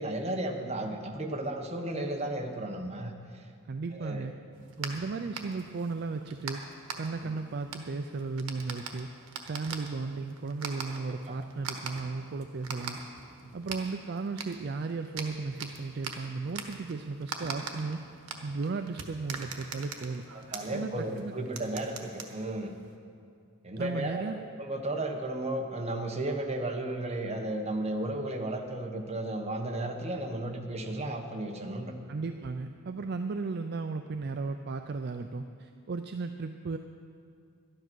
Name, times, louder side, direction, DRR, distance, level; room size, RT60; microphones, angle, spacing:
voice 1, 0.0-3.4 3.9-4.3 11.3-11.4 20.5-22.7 23.6-31.9, right 1 dB, 30° right, 3 dB, 1.1 m, -34 dB
voice 2, 3.7-4.3 4.8-6.6 7.0-9.1 9.5-13.0 13.5-18.1 18.4-20.2 20.7-20.9 21.2-21.3 23.8-24.4 32.1-36.8, right 4 dB, 45° right, 7 dB, 0.4 m, -35 dB
sound 1, 4.5-23.0, right 5 dB, 85° right, 1.2 m, -43 dB
12.0 x 10.5 x 6.2 m, 2.4 s
head